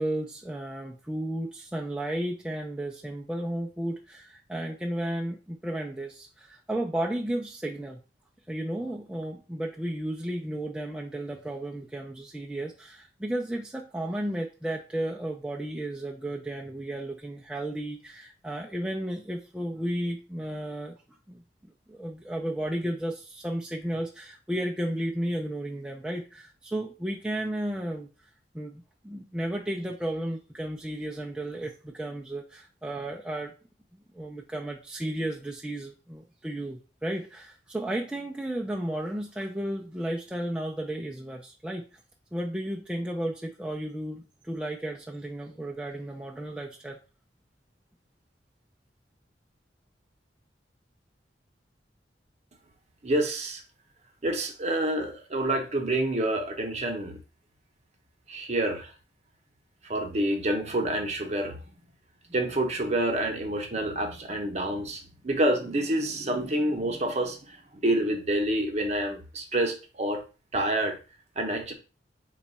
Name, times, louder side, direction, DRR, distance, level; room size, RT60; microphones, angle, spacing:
voice 1, 0.0-8.0 8.5-21.0 21.3-21.4 21.9-28.1 28.5-33.5 34.1-41.8 42.3-47.0, right 1 dB, 5° right, -1 dB, 0.3 m, -33 dB
voice 2, 53.0-53.6 54.2-57.2 58.3-58.9 59.8-61.6 62.3-70.2 70.5-71.0 71.4-71.7, right 1 dB, 40° right, 4 dB, 0.7 m, -28 dB
4.0 x 2.3 x 4.0 m, 0.33 s
head